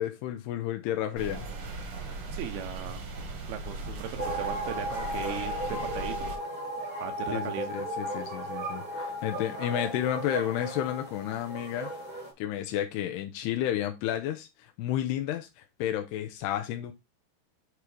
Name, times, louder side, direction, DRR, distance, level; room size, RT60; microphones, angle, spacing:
voice 1, 0.0-1.5 4.2-4.4 7.3-11.9 12.4-16.9, left 11 dB, 85° left, 2.8 m, -32 dB
sound 1, 1.2-6.4, right 3 dB, 55° right, 1.6 m, -38 dB
voice 2, 2.3-3.0 3.5-5.5 5.8-6.4 7.0-7.7, right 8 dB, 80° right, 2.6 m, -38 dB
sound 2, 4.2-12.3, right 1 dB, 25° right, 0.9 m, -35 dB
8.2 x 3.1 x 4.9 m
omnidirectional pair, 4.6 m